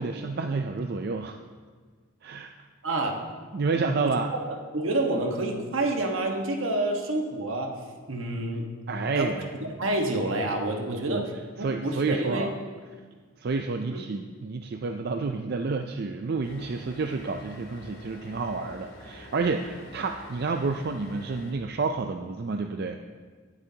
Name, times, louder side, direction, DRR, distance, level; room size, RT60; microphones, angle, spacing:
voice 1, 0.0-1.4 2.2-2.5 3.5-4.3 8.9-9.3 10.9-11.3 11.6-12.6 13.4-23.0, right 4 dB, 50° right, 5 dB, 0.4 m, -29 dB
voice 2, 2.8-3.2 4.0-4.1 4.4-7.8 8.1-8.8 9.1-9.3 9.8-12.5 13.9-14.0, right 2 dB, 75° right, 2 dB, 1.3 m, -28 dB
sound 1, 16.4-21.5, left 1 dB, 85° left, 2.7 m, -47 dB
19.0 x 8.0 x 2.8 m, 1.5 s
head